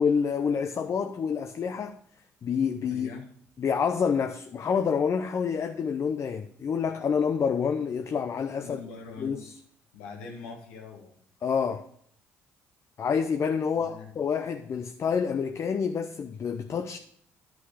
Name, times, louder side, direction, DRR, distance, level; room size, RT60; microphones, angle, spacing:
voice 1, 0.0-2.0 2.4-3.1 3.6-8.8 9.2-9.5 11.4-11.8 13.0-17.0, left 6 dB, 45° left, 0.6 m, -28 dB
voice 2, 2.9-3.3 8.6-9.5 9.9-11.2 13.8-14.1, left 4 dB, 85° left, 1.8 m, -43 dB
11.0 x 5.9 x 5.0 m
supercardioid pair, 65°, 7 cm